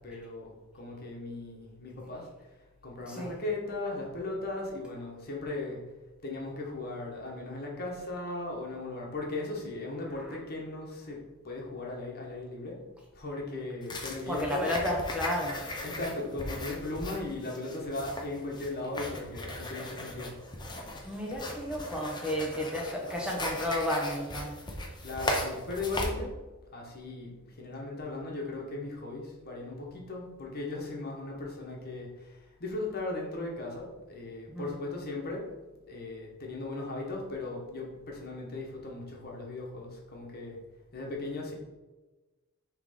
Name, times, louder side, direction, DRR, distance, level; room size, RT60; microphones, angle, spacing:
voice 1, 0.0-2.2 2.8-5.8 6.2-11.2 11.4-12.8 13.1-14.7 15.8-20.3 25.0-26.3 26.7-27.3 27.6-32.1 32.6-35.4 35.9-40.6 40.9-41.5, left 2 dB, 45° left, -1 dB, 1.3 m, -37 dB
sound 1, 13.8-26.1, left 1 dB, 20° left, 0.8 m, -38 dB
voice 2, 14.3-15.6 21.0-24.5 34.5-34.8, left 1 dB, 5° right, -2 dB, 1.0 m, -32 dB
6.1 x 3.3 x 5.0 m, 1.2 s
head